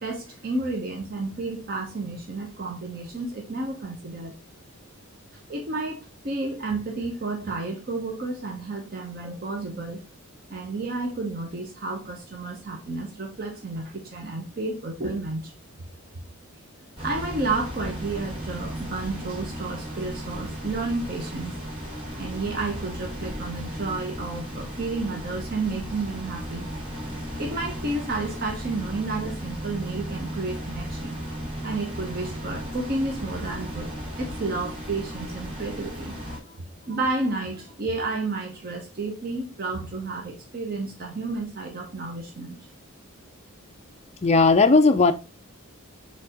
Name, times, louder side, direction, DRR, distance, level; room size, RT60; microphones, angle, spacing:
voice 1, 0.0-4.4 5.5-10.0 10.5-15.5 17.0-21.5 22.2-26.7 27.4-31.2 31.6-33.9 34.2-36.1 36.9-42.6, right 3 dB, 45° right, 0.8 m, -31 dB
sound 1, 17.0-36.4, equal, 25° right, 2.2 m, -35 dB
voice 2, 44.2-45.1, left 3 dB, 30° left, 0.4 m, -16 dB
4.2 x 3.4 x 3.6 m
head